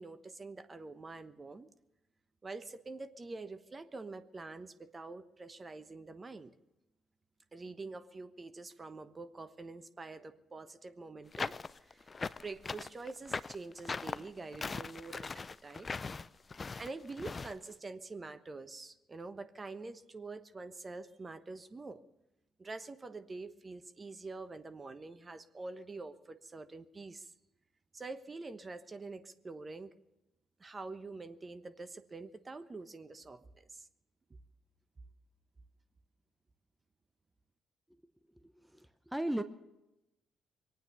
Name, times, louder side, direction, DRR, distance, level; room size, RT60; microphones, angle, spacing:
voice 1, 0.0-1.7 2.4-6.5 7.5-11.5 11.8-12.1 12.4-15.9 16.8-22.0 22.6-27.3 27.9-29.9 30.6-33.9, right 3 dB, 30° right, 10 dB, 1.1 m, -46 dB
sound 1, 11.3-17.5, left 4 dB, 35° left, 0.5 m, -40 dB
voice 2, 38.7-39.4, right 1 dB, 5° right, 10 dB, 0.9 m, -35 dB
22.5 x 9.2 x 6.8 m, 0.94 s
supercardioid pair, 55°, 0 cm